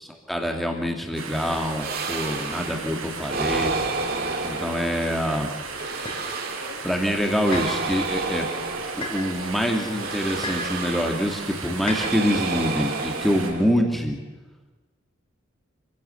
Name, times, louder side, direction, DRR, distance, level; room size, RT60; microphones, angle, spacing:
voice 1, 0.3-3.8 4.4-5.5 6.8-8.5 9.1-14.2, equal, ahead, 3 dB, 2.3 m, -25 dB
sound 1, 1.2-13.5, right 4 dB, 75° right, 4.4 m, -36 dB
sound 2, 1.8-2.9 3.3-5.3 5.7-6.9 7.4-9.4 9.9-11.4 11.8-14.0, right 3 dB, 45° right, 2.2 m, -31 dB
sound 3, 6.1-6.2 7.5-7.8 9.0-9.2 10.4-10.7 11.9-12.1, left 2 dB, 25° left, 3.3 m, -32 dB
27.0 x 16.0 x 7.0 m, 1.2 s
head